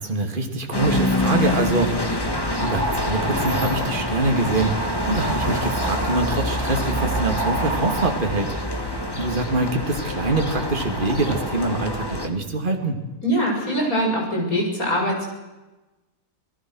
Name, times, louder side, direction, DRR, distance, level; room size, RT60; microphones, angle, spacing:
voice 1, 0.0-2.3 2.6-4.7 5.1-8.5 8.9-13.0, right 2 dB, 30° right, 3 dB, 2.7 m, -24 dB
sound 1, 0.7-12.3, left 1 dB, 15° left, 1.9 m, -26 dB
sound 2, 2.2-8.1, right 2 dB, 55° right, 3.5 m, -30 dB
voice 2, 13.2-15.2, equal, 50° left, -1 dB, 7.6 m, -22 dB
28.0 x 19.0 x 6.4 m, 1.1 s
omnidirectional pair, 1.9 m